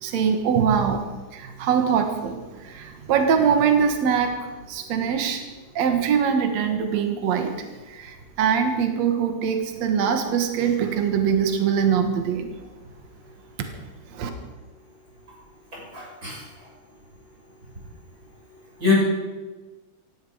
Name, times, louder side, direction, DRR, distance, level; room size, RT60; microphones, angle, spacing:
voice 1, 0.0-1.0 1.3-5.4 5.8-12.5 14.1-14.3, right 7 dB, 65° right, 5 dB, 2.7 m, -23 dB
voice 2, 15.9-16.4 18.8-18.9, left 5 dB, 25° right, -5 dB, 7.3 m, -22 dB
17.5 x 16.0 x 5.0 m, 1.2 s
omnidirectional pair, 3.5 m